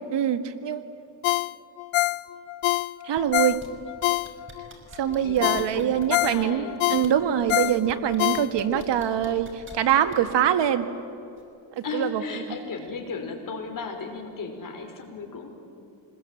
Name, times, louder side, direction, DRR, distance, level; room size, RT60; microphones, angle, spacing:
voice 1, 0.1-0.9 3.0-3.6 5.0-10.9 11.8-12.2, right 9 dB, 60° right, 8 dB, 1.8 m, -24 dB
Ringtone, 1.2-4.7 5.1-5.2 5.4-8.9 9.3-9.4, left 19 dB, 85° left, 0.6 m, -26 dB
sound 1, 3.2-3.7 4.0-6.4 6.9-7.6 7.9-10.3 11.4-11.5, right 2 dB, 25° right, 5.4 m, -45 dB
voice 2, 5.2-6.9 11.8-15.5, left 4 dB, 40° left, 3 dB, 5.4 m, -35 dB
26.0 x 21.0 x 9.2 m, 2.7 s
cardioid pair, 105°, 48 cm